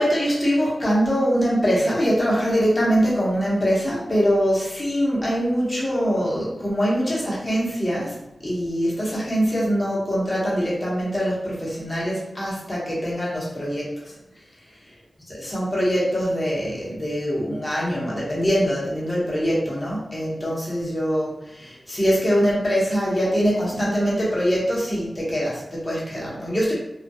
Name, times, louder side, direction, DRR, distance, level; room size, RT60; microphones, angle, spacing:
voice 1, 0.0-8.2 8.4-14.1 15.3-26.7, equal, 25° left, -7 dB, 0.9 m, -23 dB
2.2 x 2.2 x 2.7 m, 0.94 s
wide cardioid pair, 65°, 0 cm